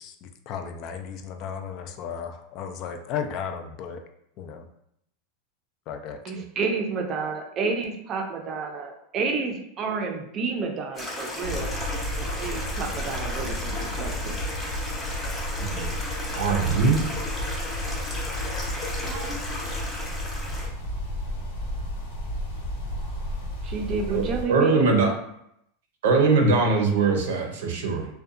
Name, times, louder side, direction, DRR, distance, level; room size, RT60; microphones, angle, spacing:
voice 1, 0.5-4.0 4.4-4.6 5.9-6.2, left 7 dB, 45° left, 6 dB, 0.3 m, -34 dB
voice 2, 6.2-11.7 12.2-14.4 18.8-19.4 23.6-25.0, right 4 dB, 35° right, 3 dB, 0.5 m, -30 dB
Stream, 10.9-20.7, left 1 dB, 15° left, 0.6 m, -34 dB
sound 1, 11.4-24.5, left 1 dB, 85° left, 0.8 m, -32 dB
voice 3, 16.3-17.0 24.1-24.2 24.5-25.1 26.0-28.1, right 4 dB, 85° right, 2 dB, 0.6 m, -21 dB
2.6 x 2.2 x 2.4 m, 0.76 s
supercardioid pair, 135°, 0 cm